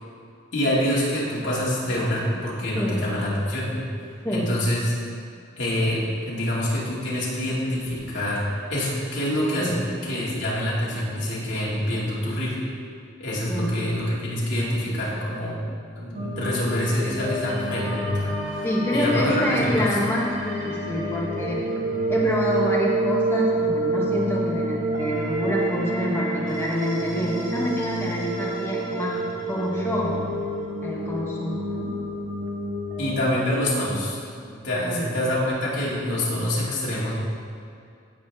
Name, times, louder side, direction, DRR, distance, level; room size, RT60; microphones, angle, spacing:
voice 1, 0.5-3.8 4.3-4.9 5.6-12.6 13.2-15.6 16.0-20.0 33.0-34.2 34.5-37.1, left 1 dB, 60° left, -7 dB, 2.4 m, -26 dB
voice 2, 2.7-3.1 4.2-4.4 9.5-9.8 13.5-13.8 18.6-21.6 22.1-30.2 30.8-31.9 34.8-35.1, equal, 10° left, -4 dB, 1.3 m, -27 dB
sound 1, 16.1-33.1, right 1 dB, 65° right, 1.3 m, -28 dB
15.0 x 5.1 x 3.6 m, 2.4 s
head